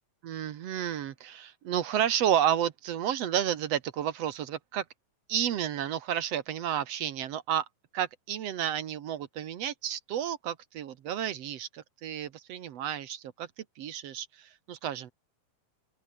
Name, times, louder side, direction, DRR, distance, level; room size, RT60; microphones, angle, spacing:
voice 1, 0.2-4.8 5.3-7.7 7.9-13.5 13.8-15.1, right 10 dB, 60° right, 2.0 m, -31 dB
open air
omnidirectional pair, 3.9 m